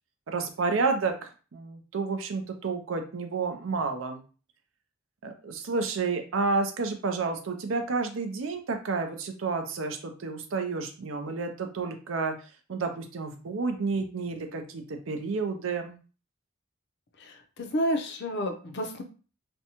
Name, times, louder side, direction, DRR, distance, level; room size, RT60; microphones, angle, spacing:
voice 1, 0.3-4.2 5.2-12.3 12.7-16.0, right 4 dB, 75° right, 5 dB, 0.5 m, -30 dB
voice 2, 17.6-19.0, equal, 55° left, 5 dB, 0.5 m, -29 dB
2.6 x 2.2 x 2.8 m, 0.36 s
head